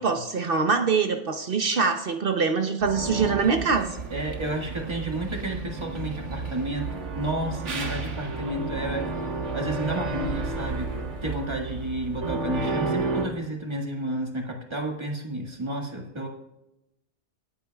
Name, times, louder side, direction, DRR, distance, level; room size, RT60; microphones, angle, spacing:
voice 1, 0.0-4.0, right 5 dB, 55° right, 5 dB, 0.9 m, -24 dB
sound 1, 2.8-13.3, right 3 dB, 90° right, 1.8 m, -32 dB
voice 2, 4.1-9.1 9.5-16.3, right 1 dB, 25° right, 1 dB, 1.8 m, -31 dB
18.5 x 8.7 x 2.3 m, 0.88 s
omnidirectional pair, 1.2 m